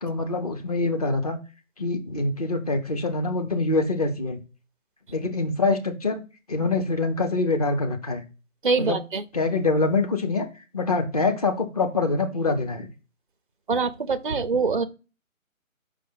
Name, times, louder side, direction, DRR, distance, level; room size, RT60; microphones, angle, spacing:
voice 1, 0.0-1.4 1.8-4.4 5.1-6.2 6.5-8.2 8.8-9.0 9.3-10.5 10.7-12.9, left 3 dB, 30° left, 0.8 m, -25 dB
voice 2, 8.6-9.2 13.7-14.8, right 4 dB, 40° right, 0.4 m, -24 dB
5.7 x 5.0 x 3.9 m
figure-of-eight pair, 155°, 41 cm